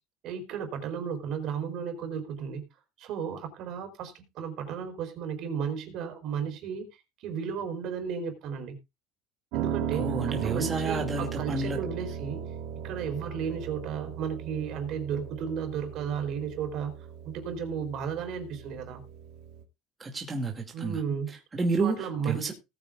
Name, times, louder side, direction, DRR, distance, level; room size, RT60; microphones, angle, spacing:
voice 1, 0.2-2.6 3.0-6.9 7.2-8.8 9.5-12.4 12.8-16.9 17.2-19.0 20.7-21.4 21.8-22.5, right 7 dB, 55° right, 4.6 m, -34 dB
Piano, 9.5-19.6, right 8 dB, 75° right, 2.5 m, -37 dB
voice 2, 9.9-11.8 20.0-21.0 21.3-22.5, right 3 dB, 15° right, 2.4 m, -30 dB
19.0 x 9.1 x 2.4 m
cardioid pair, 150°, 0 cm